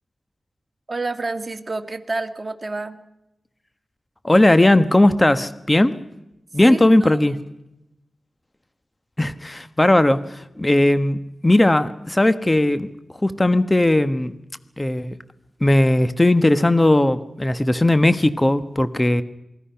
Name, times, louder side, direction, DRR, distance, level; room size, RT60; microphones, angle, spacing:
voice 1, 0.9-3.0 6.6-7.2, right 3 dB, 45° right, 6 dB, 2.0 m, -29 dB
voice 2, 4.2-6.0 6.5-7.4 9.2-12.9 13.2-14.3 14.8-15.1 15.6-19.2, left 1 dB, 20° left, 11 dB, 1.3 m, -17 dB
27.5 x 21.0 x 5.8 m, 0.89 s
cardioid pair, 50°, 0 cm